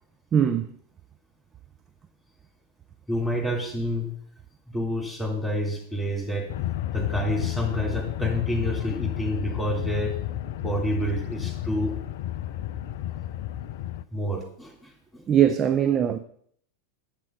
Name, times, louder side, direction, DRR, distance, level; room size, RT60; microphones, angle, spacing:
voice 1, 0.3-0.7 15.3-16.2, right 9 dB, 25° right, 0.5 m, -21 dB
voice 2, 3.1-4.1 4.7-6.6 6.9-10.2 10.6-12.0 13.1-13.2 14.1-15.2, equal, 5° left, 3.0 m, -28 dB
sound 1, 6.5-14.0, left 12 dB, 50° left, 0.4 m, -31 dB
7.5 x 7.4 x 5.4 m
figure-of-eight pair, 90°, 0 cm